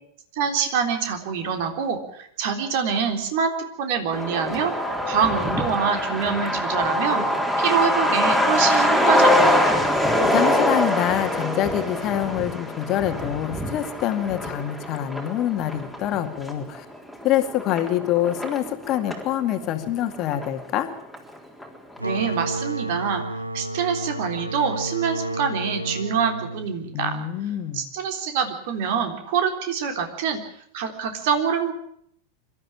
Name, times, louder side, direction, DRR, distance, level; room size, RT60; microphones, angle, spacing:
voice 1, 0.3-3.5 3.8-4.7 5.1-7.2 7.6-9.8 22.0-23.2 23.5-27.2 27.7-30.4 30.7-31.7, right 6 dB, 50° right, 5 dB, 3.6 m, -25 dB
Truck, 4.1-19.3 19.6-19.7 20.0-20.9 21.1-21.2 21.6-22.0, left 1 dB, ahead, 3.8 m, -23 dB
voice 2, 10.2-16.9 17.2-20.9 26.9-27.9, left 12 dB, 35° left, 7 dB, 2.1 m, -25 dB
sound 1, 22.0-27.4, right 1 dB, 85° right, 1.6 m, -31 dB
25.5 x 13.0 x 8.7 m, 0.69 s
figure-of-eight pair, 90°, 0 cm